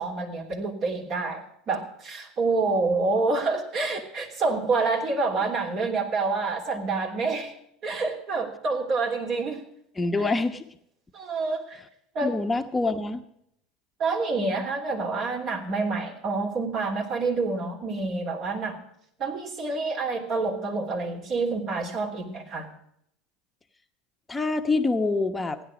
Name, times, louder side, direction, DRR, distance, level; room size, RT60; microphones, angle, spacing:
voice 1, 0.0-7.5 7.8-9.6 11.1-11.8 12.1-12.4 14.0-18.8 19.2-22.7, right 3 dB, 50° right, 2 dB, 3.3 m, -27 dB
voice 2, 10.0-10.6 12.2-13.2 24.3-25.6, left 3 dB, 15° left, 6 dB, 1.0 m, -25 dB
16.0 x 10.0 x 5.0 m, 0.74 s
hypercardioid pair, 85°, 0 cm